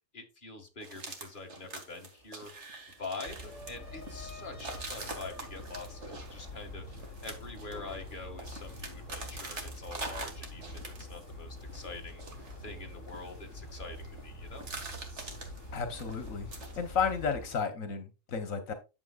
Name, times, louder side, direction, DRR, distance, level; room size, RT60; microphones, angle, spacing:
voice 1, 0.1-2.5 3.0-6.9 7.2-12.2 12.6-14.7, left 3 dB, 40° left, 2.1 m, -45 dB
sound 1, 0.8-11.3 11.6-14.2 14.5-17.1, right 3 dB, 60° right, 2.3 m, -45 dB
sound 2, 1.8-1.9 2.2-7.4 7.7-8.5, left 2 dB, 25° right, 5.5 m, -52 dB
sound 3, 3.2-17.5, left 1 dB, 65° left, 2.9 m, -46 dB
voice 2, 15.7-16.5 16.8-18.7, left 6 dB, 80° left, 1.5 m, -32 dB
10.5 x 7.2 x 2.4 m
omnidirectional pair, 1.4 m